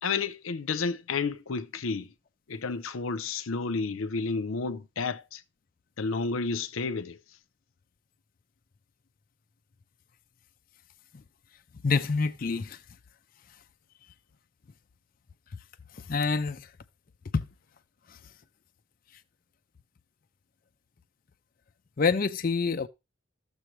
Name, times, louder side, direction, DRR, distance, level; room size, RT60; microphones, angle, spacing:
voice 1, 0.0-2.1 2.5-5.4 6.0-7.2, left 4 dB, 90° left, 0.7 m, -31 dB
voice 2, 11.8-12.8 16.1-16.7 17.3-17.5 18.1-18.2 22.0-22.9, left 4 dB, 45° left, 0.4 m, -26 dB
13.5 x 6.9 x 3.1 m
head